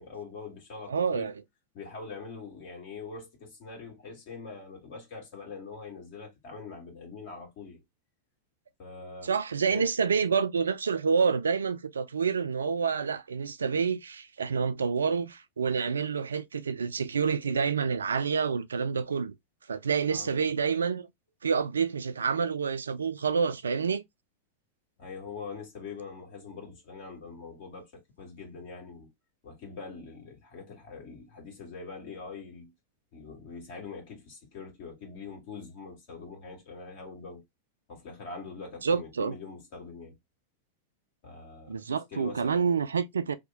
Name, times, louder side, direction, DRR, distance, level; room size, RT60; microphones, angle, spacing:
voice 1, 0.0-1.3 1.7-7.8 8.8-9.3 9.7-9.9 20.1-20.4 25.0-27.9 28.2-29.1 29.4-32.7 33.1-37.4 37.9-40.2 41.2-41.8 42.1-42.7, left 4 dB, 50° left, 1.6 m, -43 dB
voice 2, 0.9-1.3 9.2-19.3 19.7-21.1 21.4-24.0 38.8-39.4 41.7-43.4, right 5 dB, 70° right, 0.3 m, -28 dB
2.8 x 2.1 x 3.8 m
figure-of-eight pair, 90°, 0 cm